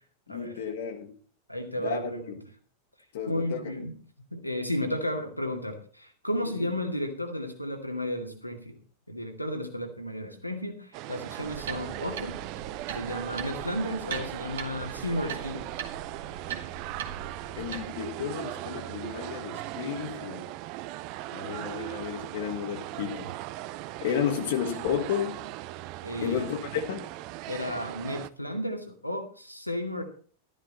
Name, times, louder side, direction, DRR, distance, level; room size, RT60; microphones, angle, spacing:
voice 1, 0.3-1.2 1.8-2.4 3.1-3.7 6.4-6.7 17.5-20.6 21.3-23.3 24.0-25.4 26.2-27.1, left 8 dB, 55° left, 5 dB, 1.8 m, -32 dB
voice 2, 1.5-2.3 3.3-3.9 4.3-8.8 9.1-12.4 12.9-15.7 26.0-26.4 27.5-30.0, left 1 dB, 90° left, 4 dB, 2.2 m, -33 dB
sound 1, 10.9-28.3, right 16 dB, 45° right, 0.6 m, -39 dB
sound 2, 11.4-17.8, right 7 dB, 60° right, 1.8 m, -40 dB
13.0 x 11.0 x 4.2 m, 0.42 s
figure-of-eight pair, 90°, 0 cm